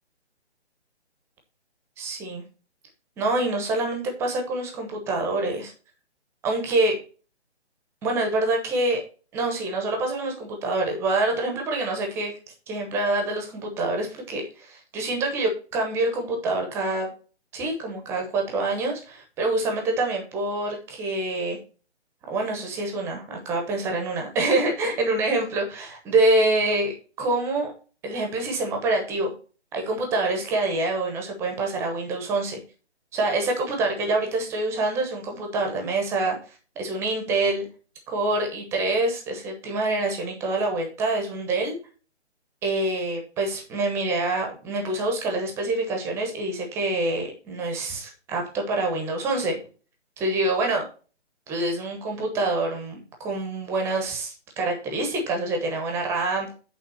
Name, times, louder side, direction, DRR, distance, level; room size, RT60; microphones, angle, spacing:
voice 1, 2.0-2.4 3.2-5.7 6.4-7.0 8.0-9.0 9.3-12.3 12.7-17.1 17.5-21.6 22.3-26.9 27.2-27.7 28.0-29.3 29.7-32.6 33.1-37.7 38.1-41.7 42.6-49.6 50.2-50.8 51.5-56.5, right 2 dB, 5° right, 3 dB, 0.9 m, -26 dB
8.5 x 3.6 x 6.6 m, 0.37 s
figure-of-eight pair, 150°, 34 cm